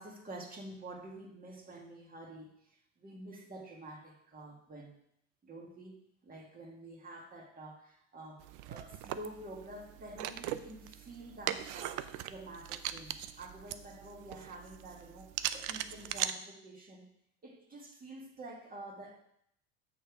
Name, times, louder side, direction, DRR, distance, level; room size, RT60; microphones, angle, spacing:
voice 1, 0.0-5.0 5.4-6.0 6.2-17.1 17.4-19.2, right 1 dB, 30° right, 0 dB, 1.9 m, -49 dB
sound 1, 8.4-16.3, right 12 dB, 70° right, 0.6 m, -40 dB
6.8 x 6.3 x 4.7 m, 0.73 s
supercardioid pair, 105°, 31 cm